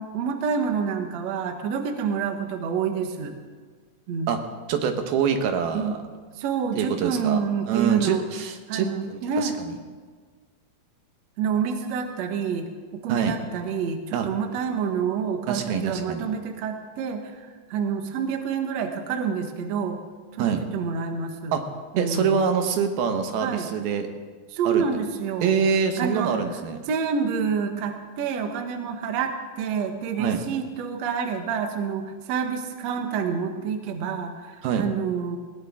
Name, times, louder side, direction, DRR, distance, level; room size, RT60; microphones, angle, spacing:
voice 1, 0.0-3.4 4.1-4.3 5.7-5.9 6.4-8.2 8.7-9.6 11.4-20.0 20.3-21.5 21.9-22.4 23.4-23.7 24.5-25.5 26.0-26.3 26.9-35.4, right 6 dB, 60° right, 5 dB, 2.0 m, -28 dB
voice 2, 4.7-6.0 6.8-9.5 13.1-13.4 14.1-14.3 15.5-16.2 20.4-20.6 21.5-21.6 22.0-24.1 24.7-24.8 25.4-26.8 30.2-30.4 34.6-34.9, right 7 dB, 90° right, 6 dB, 3.2 m, -25 dB
20.5 x 18.0 x 3.6 m, 1.5 s
omnidirectional pair, 4.2 m